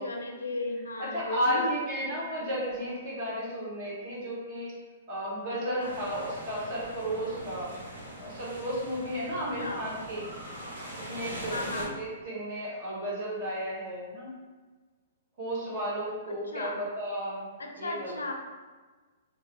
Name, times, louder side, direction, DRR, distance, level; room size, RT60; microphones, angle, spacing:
voice 1, 0.0-1.8 5.7-6.0 9.3-9.8 11.5-11.9 16.3-16.8 17.6-18.3, left 2 dB, 90° left, 2 dB, 0.4 m, -35 dB
voice 2, 1.0-4.7 5.1-7.7 8.2-10.3 10.9-14.4 15.4-17.5 17.7-18.1, equal, 40° right, -6 dB, 1.5 m, -33 dB
sound 1, 5.8-11.9, equal, 70° right, 1.1 m, -42 dB
2.9 x 2.1 x 3.9 m, 1.3 s
hypercardioid pair, 125°, 0 cm